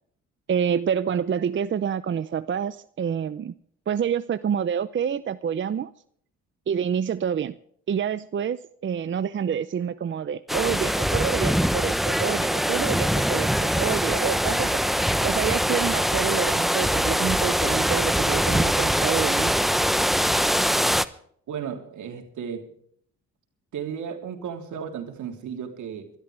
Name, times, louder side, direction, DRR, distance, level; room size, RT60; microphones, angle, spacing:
voice 1, 0.5-3.5 3.9-5.9 6.7-7.6 7.9-14.8 15.2-19.5, right 8 dB, 40° right, 13 dB, 0.7 m, -27 dB
sound 1, 10.5-21.1, equal, ahead, 0.7 m, -23 dB
voice 2, 21.5-22.7 23.7-26.1, right 7 dB, 75° right, 4 dB, 3.3 m, -34 dB
23.5 x 12.5 x 3.4 m, 0.63 s
cardioid pair, 90°, 30 cm